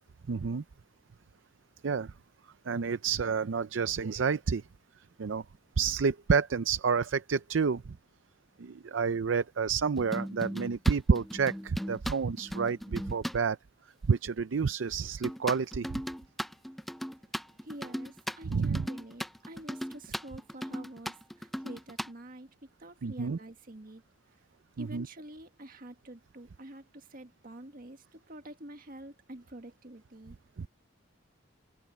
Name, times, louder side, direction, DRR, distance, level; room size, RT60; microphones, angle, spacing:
voice 1, 0.3-0.6 1.8-2.1 2.7-4.7 5.2-5.4 5.8-8.0 8.6-13.6 14.0-16.0 18.4-18.9 23.0-23.4 24.8-25.1 30.6-30.7, right 5 dB, 85° right, 0.5 m, -29 dB
sound 1, 10.0-13.4 15.2-22.1, equal, ahead, 0.5 m, -37 dB
voice 2, 17.6-22.5 22.8-24.0 24.8-30.4, right 1 dB, 50° right, 1.7 m, -47 dB
head